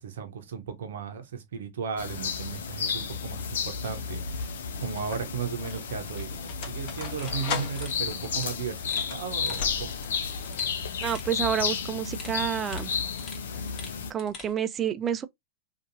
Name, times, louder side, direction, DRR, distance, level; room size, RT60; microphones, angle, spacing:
voice 1, 0.0-10.0, right 6 dB, 75° right, 0.8 m, -36 dB
sound 1, 2.0-14.1, left 6 dB, 80° left, 0.5 m, -33 dB
sound 2, 3.7-3.9 4.7-10.2, left 6 dB, 55° left, 1.0 m, -39 dB
sound 3, 7.1-14.5, left 4 dB, 30° left, 1.1 m, -48 dB
voice 2, 11.0-12.9 14.1-15.3, right 9 dB, 30° right, 0.4 m, -29 dB
2.8 x 2.4 x 2.5 m
hypercardioid pair, 105°, 0 cm